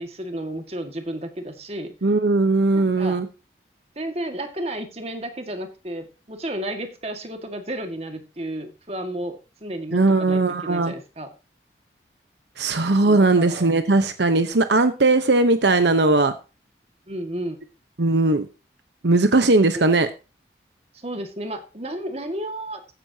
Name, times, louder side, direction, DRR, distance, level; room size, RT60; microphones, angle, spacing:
voice 1, 0.0-1.9 2.7-3.2 4.0-11.3 13.0-13.7 17.1-17.6 19.7-19.9 20.9-22.8, right 1 dB, 35° right, 6 dB, 1.9 m, -32 dB
voice 2, 2.0-3.3 9.9-10.9 12.6-16.3 18.0-18.5 19.0-20.1, right 2 dB, 75° right, 9 dB, 1.0 m, -19 dB
15.0 x 10.5 x 2.9 m, 0.31 s
head